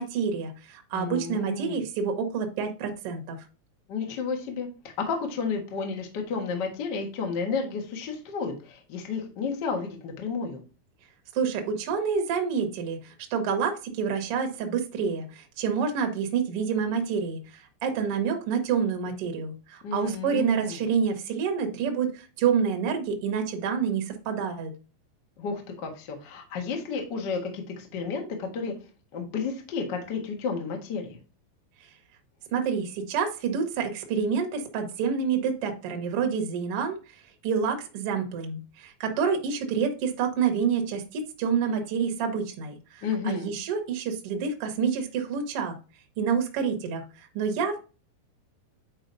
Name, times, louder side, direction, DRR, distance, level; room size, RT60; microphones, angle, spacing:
voice 1, 0.0-3.4 11.3-24.7 32.5-37.0 37.4-45.7 46.2-47.8, right 6 dB, 65° right, 4 dB, 1.4 m, -28 dB
voice 2, 0.9-1.8 3.9-10.6 19.8-20.8 25.4-28.7 29.1-31.2 43.0-43.5, left 5 dB, 75° left, 2 dB, 1.0 m, -32 dB
8.9 x 4.7 x 2.7 m, 0.34 s
omnidirectional pair, 4.5 m